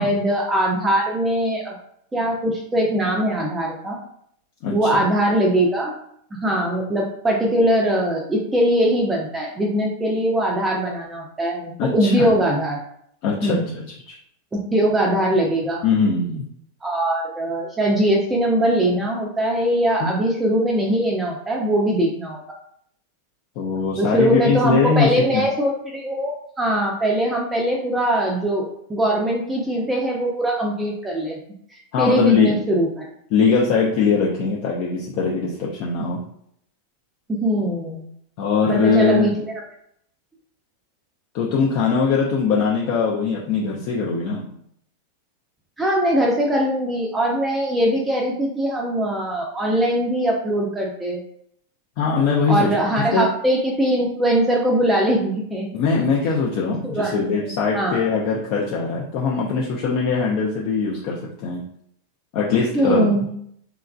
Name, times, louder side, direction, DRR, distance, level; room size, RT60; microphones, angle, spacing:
voice 1, 0.0-1.7 2.1-4.0 4.7-5.9 6.3-12.8 13.4-13.6 14.7-15.8 16.8-22.4 24.0-31.4 32.0-33.0 37.3-38.1 38.7-39.6 45.8-51.2 52.5-55.7 56.8-57.1 57.4-58.0 62.7-63.3, right 1 dB, 10° right, -1 dB, 0.4 m, -21 dB
voice 2, 11.8-12.3 13.2-14.1 15.8-16.4 20.0-20.2 23.6-25.4 31.9-32.6 33.3-36.2 38.4-39.3 41.3-44.4 52.0-52.8 53.1-53.3 55.7-61.6 62.3-63.2, left 5 dB, 45° left, -3 dB, 0.4 m, -21 dB
2.9 x 2.3 x 2.2 m, 0.68 s
figure-of-eight pair, 90°, 0 cm